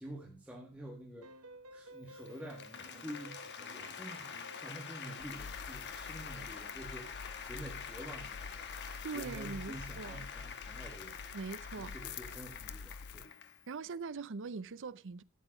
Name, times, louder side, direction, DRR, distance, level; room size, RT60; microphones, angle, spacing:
voice 1, 0.0-11.4 11.8-13.3, right 1 dB, 5° right, 2.0 m, -49 dB
sound 1, 1.2-4.8, right 1 dB, 85° right, 1.1 m, -53 dB
Applause, 2.1-13.7, left 7 dB, 55° left, 1.4 m, -46 dB
sound 2, 5.2-13.3, left 5 dB, 80° left, 0.6 m, -48 dB
voice 2, 9.0-10.3 11.3-11.9 13.7-15.2, right 4 dB, 60° right, 0.6 m, -42 dB
13.0 x 8.4 x 4.9 m
head